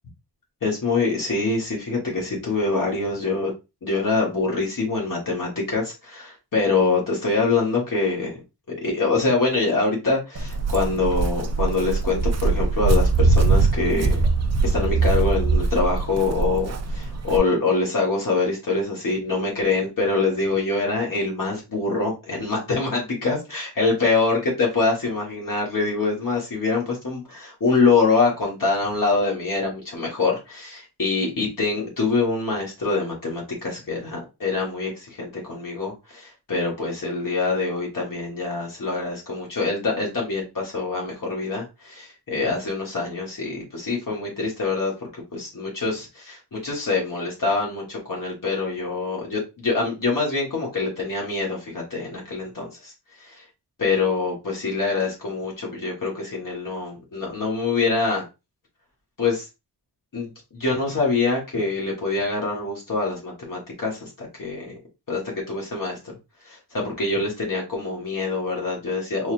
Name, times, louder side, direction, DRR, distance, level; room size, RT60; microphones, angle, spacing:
voice 1, 0.6-3.5 3.8-8.4 8.8-14.2 14.6-52.9 53.2-53.4 53.8-58.2 59.2-59.5 60.1-64.7 65.1-66.0 66.4-69.3, left 3 dB, 50° left, -3 dB, 1.5 m, -25 dB
Walk footsteps, 10.3-17.4, right 3 dB, 40° right, 0.5 m, -22 dB
4.0 x 3.2 x 2.5 m, 0.26 s
wide cardioid pair, 140°, 43 cm